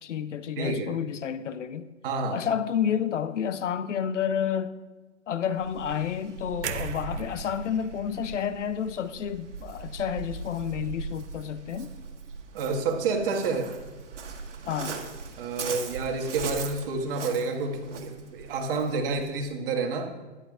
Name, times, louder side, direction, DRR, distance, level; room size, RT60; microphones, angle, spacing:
voice 1, 0.0-1.9 2.3-4.8 5.3-11.9 14.7-15.0, left 8 dB, 90° left, 0.8 m, -30 dB
voice 2, 0.6-0.9 2.0-2.4 12.5-13.7 15.4-20.1, right 4 dB, 50° right, 1.8 m, -29 dB
Waves surf, 5.6-19.4, right 5 dB, 90° right, 1.7 m, -40 dB
sound 1, 6.6-10.7 11.0-11.2, right 9 dB, 70° right, 0.8 m, -41 dB
13.5 x 11.5 x 2.5 m
hypercardioid pair, 145°, 35 cm